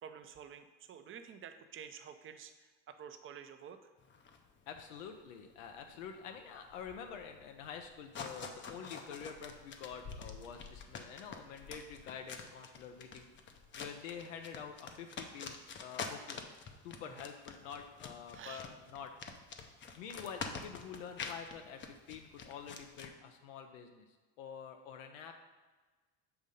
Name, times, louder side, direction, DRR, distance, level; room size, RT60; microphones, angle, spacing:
voice 1, 0.0-3.8 17.0-17.3 18.3-18.6, right 8 dB, 35° right, 8 dB, 0.6 m, -50 dB
sound 1, 4.0-23.1, left 5 dB, 30° left, 0.6 m, -47 dB
voice 2, 4.7-13.3 13.8-16.4 16.8-19.1 20.0-24.1 24.4-25.3, left 7 dB, 85° left, 5 dB, 0.7 m, -47 dB
6.8 x 2.7 x 5.2 m, 1.3 s
supercardioid pair, 90°, 38 cm